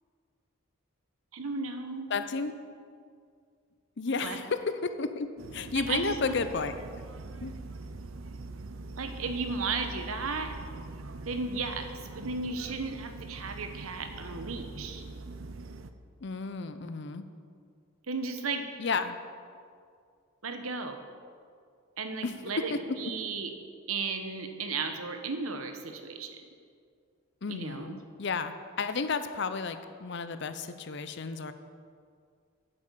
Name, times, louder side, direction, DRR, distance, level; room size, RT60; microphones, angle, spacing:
voice 1, 1.3-2.3 4.2-4.4 5.7-6.2 9.0-10.5 11.3-11.9 12.2-15.0 18.1-18.6 20.4-21.0 22.0-23.5 23.9-26.4 27.5-27.9, right 4 dB, 85° right, 6 dB, 1.0 m, -34 dB
voice 2, 2.1-2.5 4.0-5.3 5.5-6.8 7.4-7.5 16.2-17.2 18.8-19.1 22.2-22.3 22.7-23.1 27.4-31.5, left 4 dB, 55° left, 10 dB, 0.6 m, -32 dB
sound 1, 5.4-15.9, right 3 dB, 70° right, 0.6 m, -43 dB
8.8 x 8.3 x 6.8 m, 2.2 s
head